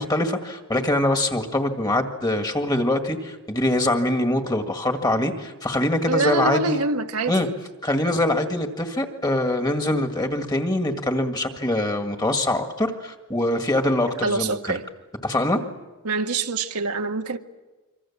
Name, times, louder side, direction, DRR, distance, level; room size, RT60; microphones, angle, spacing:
voice 1, 0.0-6.8 7.3-7.5 7.8-14.8 15.2-15.6, left 1 dB, 20° left, 1.9 m, -23 dB
voice 2, 6.1-7.4 14.2-14.8 16.0-17.4, right 3 dB, 90° right, 1.5 m, -25 dB
26.5 x 25.5 x 7.3 m
head